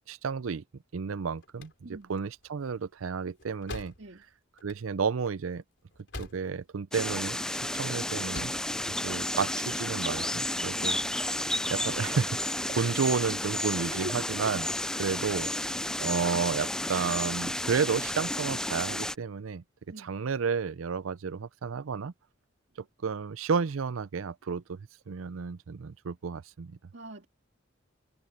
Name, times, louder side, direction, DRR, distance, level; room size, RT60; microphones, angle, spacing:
voice 1, 0.1-0.6 0.9-3.9 4.6-5.6 6.2-8.5 8.9-11.0 11.7-14.7 15.0-19.6 20.0-22.1 23.0-26.8, right 5 dB, 90° right, 0.5 m, -32 dB
sound 1, 1.4-6.7 7.0-7.8 8.1-8.7, left 2 dB, 60° left, 4.6 m, -46 dB
sound 2, 6.9-19.2, left 1 dB, 5° left, 0.3 m, -32 dB
voice 2, 13.9-14.3 19.9-20.1 26.9-27.3, right 1 dB, 65° right, 2.1 m, -43 dB
head